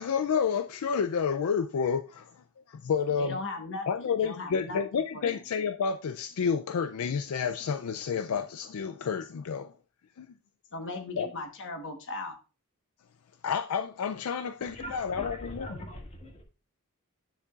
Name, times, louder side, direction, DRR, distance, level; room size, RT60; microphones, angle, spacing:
voice 1, 0.0-2.3 2.7-3.4 3.9-9.7 10.2-10.3 11.2-11.3 13.4-15.9, left 6 dB, 75° left, 0.4 m, -30 dB
voice 2, 3.2-5.4 10.7-12.4, left 2 dB, 60° left, 1.2 m, -38 dB
voice 3, 14.7-16.4, equal, 30° left, 1.9 m, -41 dB
9.9 x 6.7 x 2.4 m
head